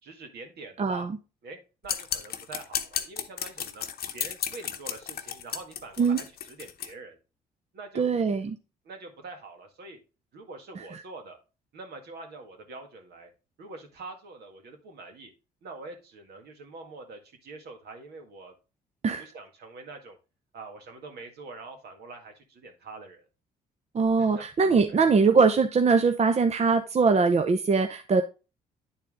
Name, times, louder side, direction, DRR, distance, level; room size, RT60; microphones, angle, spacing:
voice 1, 0.0-1.1 1.4-1.6 1.8-3.8 4.1-7.2 7.7-8.1 8.8-10.0 10.3-11.4 11.7-13.3 13.6-15.3 15.6-18.5 19.2-20.2 20.5-23.3 24.2-24.5 24.9-25.0, right 3 dB, 65° right, 4 dB, 1.9 m, -44 dB
voice 2, 0.8-1.1 6.0-6.2 8.0-8.6 19.0-19.2 23.9-28.2, right 4 dB, 40° right, 7 dB, 0.7 m, -22 dB
sound 1, 1.9-6.9, left 9 dB, 60° left, 0.9 m, -33 dB
9.5 x 4.4 x 3.6 m, 0.31 s
supercardioid pair, 60°, 18 cm